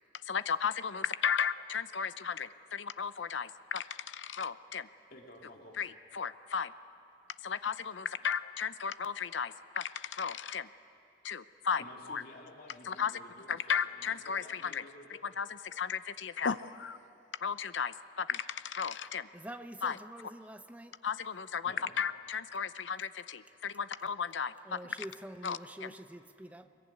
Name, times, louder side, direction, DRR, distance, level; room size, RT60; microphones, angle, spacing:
voice 1, 0.3-4.9 5.8-6.7 7.4-10.7 11.2-12.2 12.9-13.1 13.5-14.8 15.2-17.0 17.4-19.3 19.8-20.0 21.0-24.8 25.4-25.9, left 6 dB, 80° left, 0.7 m, -35 dB
voice 2, 5.1-5.8 11.8-15.2 21.6-21.9 26.6-26.7, left 1 dB, 50° left, 2.6 m, -53 dB
voice 3, 19.3-21.0 24.6-26.6, right 1 dB, 10° right, 0.7 m, -46 dB
23.0 x 21.5 x 9.7 m
head